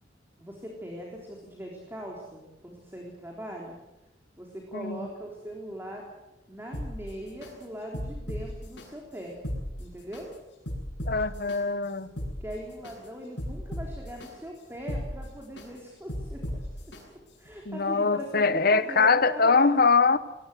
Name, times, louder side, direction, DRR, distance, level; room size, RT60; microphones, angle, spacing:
voice 1, 0.4-3.8 4.4-6.0 6.5-9.4 9.8-10.3 12.2-16.6 16.9-17.0 17.4-19.7, equal, 15° right, -1 dB, 3.7 m, -40 dB
voice 2, 4.7-5.1 11.1-12.1 17.7-20.2, left 4 dB, 55° left, 13 dB, 1.2 m, -23 dB
sound 1, 6.7-7.5 7.9-8.8 9.3-10.2 10.7-11.6 12.0-12.9 13.4-14.3 14.7-15.7 16.1-17.0 17.5-17.6, equal, 75° left, 7.8 m, -36 dB
21.5 x 19.0 x 8.4 m, 0.98 s
head